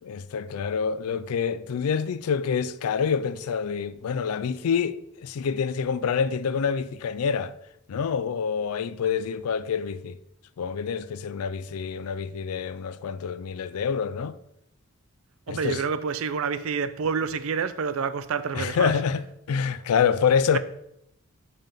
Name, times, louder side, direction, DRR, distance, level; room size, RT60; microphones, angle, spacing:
voice 1, 0.0-7.5 7.9-10.2 10.6-14.4 15.5-15.8 18.5-20.6, left 6 dB, 80° left, 0.4 m, -27 dB
voice 2, 15.5-18.9, right 6 dB, 65° right, 0.4 m, -28 dB
5.4 x 3.6 x 5.7 m
head